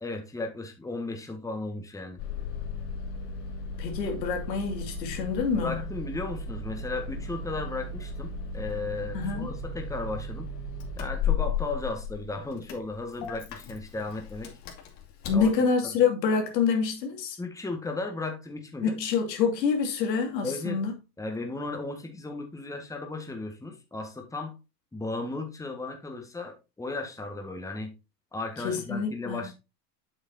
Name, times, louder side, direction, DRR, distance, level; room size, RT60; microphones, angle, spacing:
voice 1, 0.0-2.2 5.5-10.5 11.0-14.5 15.3-15.5 15.8-16.0 17.4-19.0 20.4-20.8 21.2-24.6 24.9-27.9 28.3-29.5, left 3 dB, 5° left, 1.7 m, -35 dB
Engine starting, 2.2-15.5, left 4 dB, 55° left, 2.6 m, -34 dB
voice 2, 3.8-5.8 9.1-9.5 15.2-17.4 18.8-20.9 28.6-29.4, left 6 dB, 80° left, 2.7 m, -26 dB
7.9 x 7.1 x 2.8 m
hypercardioid pair, 105°, 50 cm